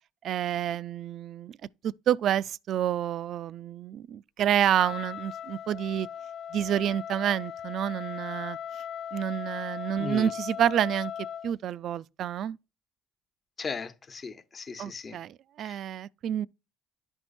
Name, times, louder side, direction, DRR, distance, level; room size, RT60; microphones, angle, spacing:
voice 1, 0.2-1.6 1.8-6.1 6.5-8.6 9.1-11.1 11.4-12.6 14.8-16.5, right 10 dB, 65° right, 0.3 m, -29 dB
Wind instrument woodwind instrument, 4.7-11.5, left 9 dB, 55° left, 0.4 m, -38 dB
voice 2, 10.0-10.3 13.6-15.2 15.6-15.8, left 5 dB, 40° left, 1.1 m, -37 dB
11.0 x 4.5 x 4.2 m
supercardioid pair, 70°, 0 cm